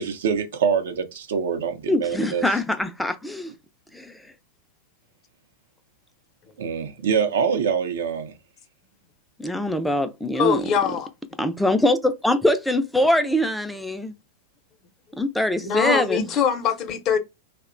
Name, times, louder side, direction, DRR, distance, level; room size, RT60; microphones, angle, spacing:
voice 1, 0.0-2.4 6.6-8.3, right 6 dB, 75° right, 0.5 m, -24 dB
voice 2, 1.9-3.5 3.9-4.2 9.4-10.6 11.4-14.1 15.2-16.3, left 1 dB, 5° left, 0.4 m, -23 dB
voice 3, 10.3-11.1 15.6-17.2, left 7 dB, 40° left, 0.6 m, -23 dB
2.8 x 2.1 x 2.5 m
hypercardioid pair, 105°, 0 cm